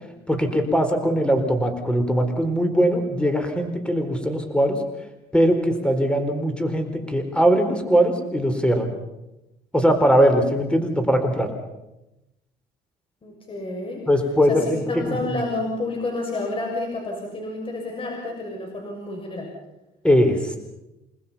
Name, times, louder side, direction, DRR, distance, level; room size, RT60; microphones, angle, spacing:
voice 1, 0.3-4.8 5.3-8.9 9.7-11.5 14.1-14.8 15.1-15.2 20.0-20.6, equal, 5° left, 6 dB, 4.2 m, -20 dB
voice 2, 13.2-14.0 14.5-19.5, left 2 dB, 30° left, 1 dB, 6.6 m, -30 dB
29.0 x 20.0 x 5.7 m, 0.93 s
cardioid pair, 110°, 17 cm